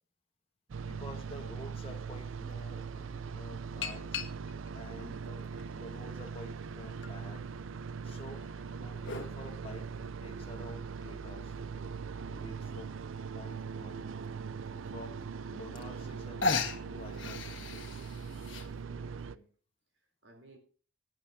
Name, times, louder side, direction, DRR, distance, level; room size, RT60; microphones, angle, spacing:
voice 1, 0.7-4.2 4.7-5.5 5.8-7.5 8.0-8.4 8.7-9.9 10.2-11.5 12.3-12.9 13.3-14.1 14.7-15.2 15.5-16.4 16.8-17.8, left 1 dB, 30° left, 1.5 m, -49 dB
sound 1, 0.7-19.4, right 5 dB, 90° right, 0.5 m, -41 dB
sound 2, 2.1-2.2 3.8-4.7 5.4-6.4 7.0-7.1 8.3-9.3 11.0-11.1 11.6-11.7 11.9-12.0 12.3-12.7 13.6-13.7 14.2-14.3 15.5-15.6 15.8-16.1 16.4-18.7, left 4 dB, 75° left, 1.4 m, -36 dB
voice 2, 8.0-8.3 12.6-12.8 18.9-19.5 20.2-20.6, equal, 70° right, 3.7 m, -57 dB
18.5 x 10.5 x 2.8 m
head